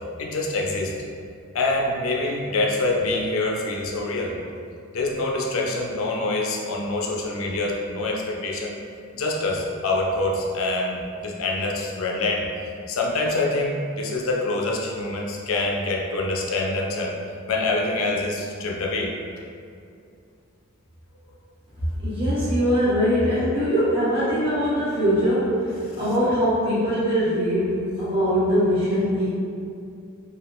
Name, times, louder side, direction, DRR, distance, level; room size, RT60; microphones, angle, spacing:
voice 1, 0.2-0.9 1.5-4.3 4.9-8.7 9.1-12.4 12.9-17.1 17.5-19.1, left 2 dB, 70° left, -1 dB, 0.4 m, -25 dB
voice 2, 22.0-29.3, equal, 25° right, -13 dB, 0.9 m, -22 dB
3.4 x 2.4 x 2.4 m, 2.4 s
head